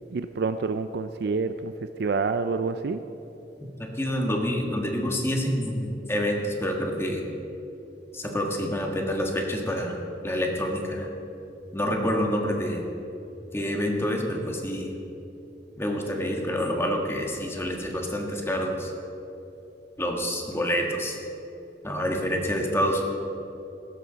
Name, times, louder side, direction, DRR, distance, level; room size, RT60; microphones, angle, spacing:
voice 1, 0.1-1.7 2.0-3.0, right 4 dB, 65° right, 10 dB, 0.4 m, -27 dB
voice 2, 3.6-7.3 8.1-11.1 11.7-12.8 13.5-15.0 15.8-18.9 20.0-21.2 21.8-23.0, equal, 15° left, 1 dB, 1.6 m, -27 dB
16.0 x 12.5 x 4.0 m, 2.9 s
head